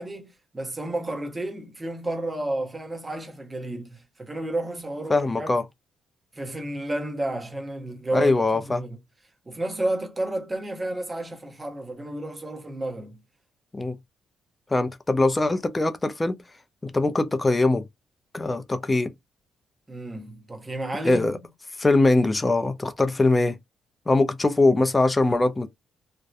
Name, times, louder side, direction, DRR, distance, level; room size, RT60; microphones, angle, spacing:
voice 1, 0.0-5.5 6.3-9.0 9.5-13.2 19.9-21.4, right 1 dB, 20° right, 0.8 m, -31 dB
voice 2, 5.1-5.6 8.1-8.8 13.7-14.0 14.7-16.4 16.8-17.8 18.3-19.1 21.0-21.4 21.8-23.6 24.1-25.7, left 2 dB, 20° left, 0.4 m, -22 dB
2.6 x 2.1 x 2.3 m
cardioid pair, 90°, 0 cm